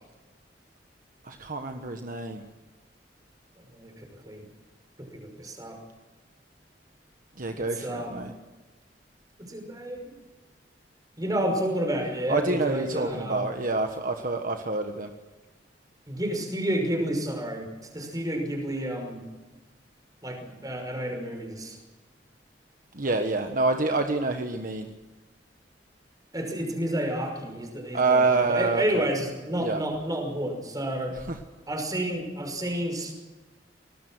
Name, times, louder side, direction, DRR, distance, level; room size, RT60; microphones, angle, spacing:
voice 1, 1.2-2.4 7.4-8.3 12.3-15.1 22.9-24.9 27.9-29.0 29.6-29.8 31.2-31.4, right 3 dB, 50° right, 5 dB, 1.4 m, -27 dB
voice 2, 3.7-4.4 5.0-5.8 7.6-8.2 9.4-10.2 11.2-13.4 16.1-19.2 20.2-21.8 26.3-31.2 31.7-33.1, right 1 dB, 20° right, 4 dB, 5.7 m, -30 dB
25.0 x 19.5 x 6.3 m, 1.2 s
head